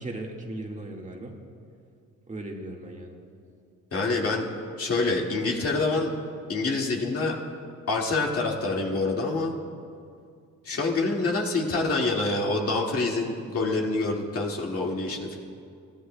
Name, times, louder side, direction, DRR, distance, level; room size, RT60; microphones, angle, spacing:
voice 1, 0.0-1.3 2.3-3.1, right 2 dB, 25° right, 0 dB, 1.7 m, -37 dB
voice 2, 3.9-4.5 4.8-6.1 6.5-7.4 7.9-9.6 10.6-15.4, left 3 dB, 50° left, -1 dB, 2.0 m, -26 dB
21.5 x 15.0 x 2.2 m, 2.3 s
cardioid pair, 90°, 30 cm